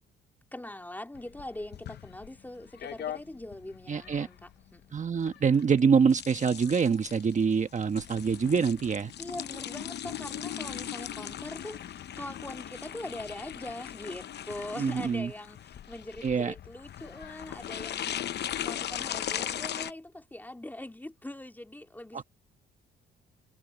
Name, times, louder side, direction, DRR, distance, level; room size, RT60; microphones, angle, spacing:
voice 1, 0.5-5.0 9.2-18.3 18.6-22.2, left 1 dB, 10° left, 2.7 m, -42 dB
sound 1, 1.1-19.9, left 10 dB, 60° left, 0.8 m, -39 dB
voice 2, 3.9-4.3 4.9-9.1 14.8-15.3 16.2-16.5 22.1-22.2, right 6 dB, 40° right, 1.3 m, -25 dB
cardioid pair, 90°, 20 cm